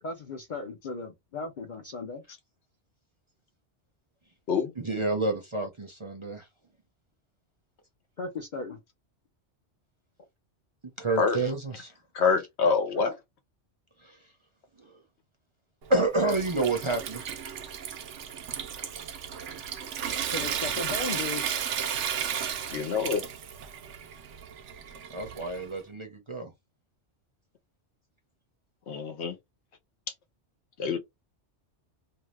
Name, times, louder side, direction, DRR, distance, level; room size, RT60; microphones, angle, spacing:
voice 1, 0.0-2.2 8.2-8.8 20.3-21.6, left 4 dB, 55° left, 0.6 m, -36 dB
voice 2, 4.8-6.5 11.0-11.9 14.0-14.2 15.9-17.4 25.1-26.5, right 2 dB, 30° right, 0.7 m, -29 dB
voice 3, 12.1-13.2 22.7-23.2 28.9-29.4 30.8-31.0, left 5 dB, 70° left, 1.0 m, -26 dB
Water tap faucet / Sink (filling or washing) / Trickle dribble, 15.8-25.8, right 8 dB, 80° right, 1.0 m, -34 dB
2.7 x 2.3 x 3.2 m
omnidirectional pair, 1.2 m